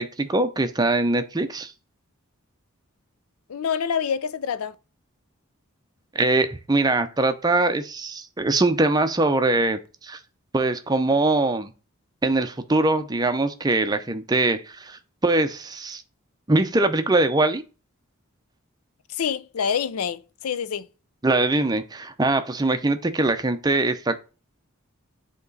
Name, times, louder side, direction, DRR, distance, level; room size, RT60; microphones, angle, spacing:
voice 1, 0.0-1.7 6.1-10.2 10.5-11.7 12.2-16.0 16.5-17.6 21.2-24.2, right 2 dB, 20° right, 0.5 m, -22 dB
voice 2, 3.5-4.7 19.1-20.9, left 7 dB, 85° left, 0.5 m, -26 dB
7.9 x 3.0 x 3.9 m
head